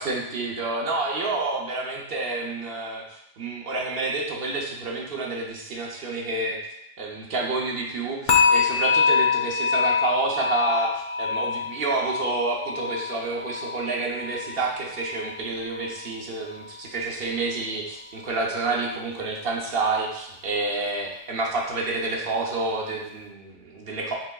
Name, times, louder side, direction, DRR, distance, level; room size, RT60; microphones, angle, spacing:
voice 1, 0.0-3.0 3.4-6.6 7.0-24.1, right 3 dB, 55° right, -1 dB, 0.8 m, -29 dB
sound 1, 8.3-15.4 15.7-16.0 16.5-16.7, left 5 dB, 60° left, 0.5 m, -25 dB
5.8 x 3.3 x 2.3 m, 0.80 s
omnidirectional pair, 1.4 m